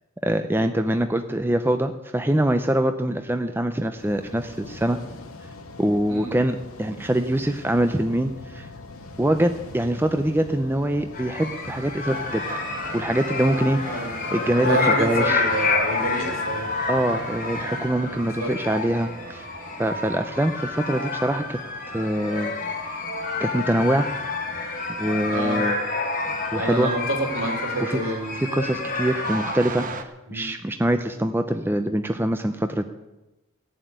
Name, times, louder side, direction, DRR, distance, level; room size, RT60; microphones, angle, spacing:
voice 1, 0.2-5.0 5.8-8.7 9.2-12.4 12.9-13.8 14.3-15.4 16.9-19.4 19.8-21.6 21.9-22.5 23.4-24.1 25.0-25.7 26.5-26.9 27.8-28.0 28.4-32.8, right 1 dB, 10° right, 7 dB, 0.6 m, -24 dB
sound 1, 4.0-17.9, left 2 dB, 80° left, 1.9 m, -42 dB
sound 2, 11.1-29.5, left 3 dB, 40° left, 3.1 m, -29 dB
sound 3, 12.0-30.0, right 3 dB, 40° right, 1.0 m, -41 dB
voice 2, 14.6-16.7 18.0-18.5 25.3-25.6 26.5-28.4 30.3-30.5, right 1 dB, 75° right, 1 dB, 3.7 m, -28 dB
16.0 x 7.5 x 9.5 m, 1.0 s
head